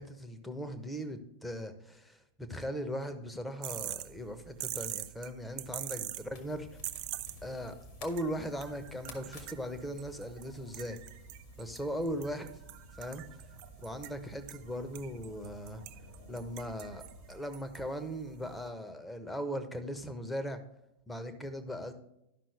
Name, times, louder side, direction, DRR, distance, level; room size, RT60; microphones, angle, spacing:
voice 1, 0.0-6.7 7.4-11.0 11.6-12.6 13.0-13.3 13.8-15.8 16.3-20.6 21.1-21.9, equal, 5° left, 8 dB, 1.0 m, -39 dB
sound 1, 3.6-18.7, right 14 dB, 45° right, 0.5 m, -45 dB
sound 2, 6.3-17.4, left 2 dB, 45° left, 1.8 m, -54 dB
12.5 x 5.9 x 3.4 m, 0.85 s
figure-of-eight pair, 90°, 0 cm